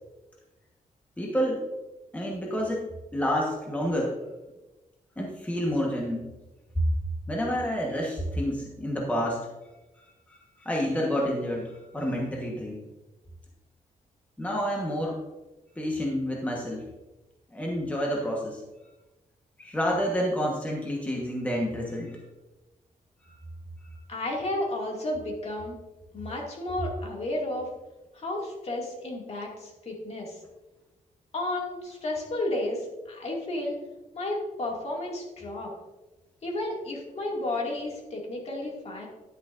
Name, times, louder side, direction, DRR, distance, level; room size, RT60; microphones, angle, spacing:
voice 1, 1.2-1.6 2.1-4.1 5.2-6.3 7.3-9.5 10.3-12.8 14.4-15.2 15.8-16.8 17.5-18.6 19.6-22.2 23.2-23.3, equal, 10° left, -2 dB, 1.2 m, -29 dB
voice 2, 24.1-25.8 26.1-27.7 28.1-30.4 31.3-33.8 34.1-35.7 36.4-39.1, left 1 dB, 50° left, -2 dB, 2.2 m, -32 dB
10.5 x 10.0 x 2.6 m, 1.1 s
wide cardioid pair, 155°, 14 cm